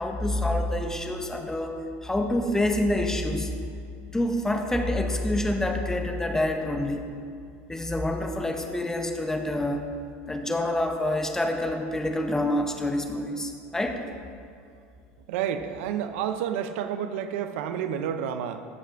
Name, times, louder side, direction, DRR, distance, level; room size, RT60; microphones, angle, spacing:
voice 1, 0.0-1.8 2.0-3.5 4.1-7.0 7.7-9.9 10.3-14.0, left 1 dB, 10° left, 4 dB, 0.7 m, -27 dB
voice 2, 15.3-18.6, right 9 dB, 80° right, 9 dB, 0.5 m, -30 dB
14.5 x 5.6 x 2.5 m, 2.3 s
supercardioid pair, 125°, 7 cm